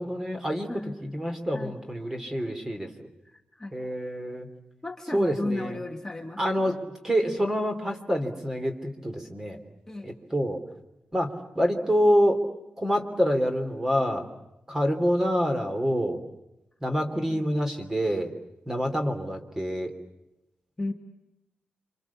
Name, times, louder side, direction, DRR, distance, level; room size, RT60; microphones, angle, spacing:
voice 1, 0.0-2.9 3.7-4.5 5.1-5.8 6.4-9.6 10.0-10.6 11.1-12.4 12.8-14.3 14.7-16.2 16.8-18.3 18.7-20.0, equal, 15° right, 5 dB, 3.0 m, -27 dB
voice 2, 3.2-3.7 4.8-6.8 9.9-10.1 20.8-20.9, left 2 dB, 10° left, 1 dB, 1.7 m, -35 dB
29.0 x 26.5 x 7.2 m, 0.91 s
wide cardioid pair, 165°, 4 cm